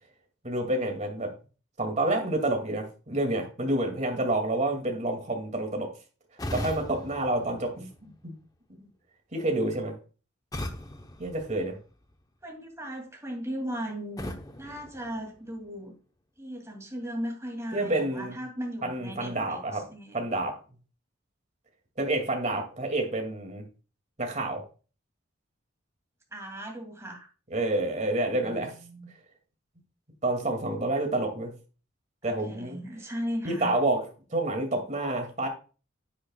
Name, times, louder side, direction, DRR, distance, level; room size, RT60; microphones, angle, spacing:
voice 1, 0.4-1.3 1.8-5.9 6.5-8.4 9.3-10.0 11.2-11.8 17.7-18.4 18.8-19.9 20.1-20.6 22.0-23.6 24.2-24.6 27.5-28.7 30.2-31.5 32.2-32.8 33.4-34.0 34.3-35.5, right 2 dB, 35° right, 3 dB, 2.3 m, -28 dB
sound 1, 6.4-8.4 10.5-12.2 14.2-15.8, left 1 dB, 20° left, 0.8 m, -39 dB
voice 2, 12.4-16.0 16.4-19.6 19.9-20.2 26.3-27.3 28.3-29.1 32.2-33.8, equal, 15° right, 2 dB, 2.5 m, -37 dB
9.9 x 9.2 x 2.3 m, 0.35 s
head